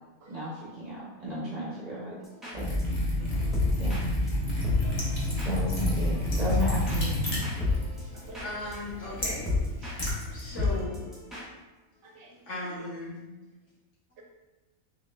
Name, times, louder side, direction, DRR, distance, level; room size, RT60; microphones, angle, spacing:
voice 1, 0.3-2.2 2.5-2.6 3.8-4.1 5.4-7.3, right 1 dB, 40° right, -8 dB, 0.7 m, -34 dB
sound 1, 2.2-2.8 3.2-9.9 10.2-10.3 10.5-11.4, left 3 dB, ahead, 0.7 m, -32 dB
Liquid, 2.5-10.8, left 1 dB, 30° left, 0.8 m, -30 dB
voice 2, 3.4-3.7 4.8-5.2 7.7-7.8 8.1-8.4 9.8-10.0 12.0-12.3, right 2 dB, 70° right, 0 dB, 1.0 m, -51 dB
voice 3, 8.0-9.5 10.3-11.0 12.3-13.2, left 2 dB, 60° left, -7 dB, 1.4 m, -37 dB
4.0 x 2.4 x 3.2 m, 1.1 s
omnidirectional pair, 1.5 m